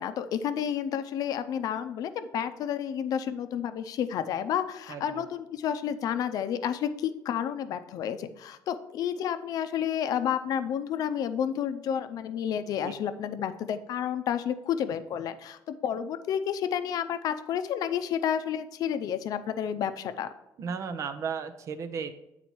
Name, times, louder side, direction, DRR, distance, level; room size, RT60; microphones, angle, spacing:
voice 1, 0.0-20.3, left 9 dB, 60° left, 11 dB, 0.5 m, -30 dB
voice 2, 4.9-5.2 12.8-12.9 20.6-22.1, right 6 dB, 50° right, 10 dB, 0.7 m, -34 dB
8.6 x 4.1 x 4.5 m, 0.87 s
cardioid pair, 125°, 7 cm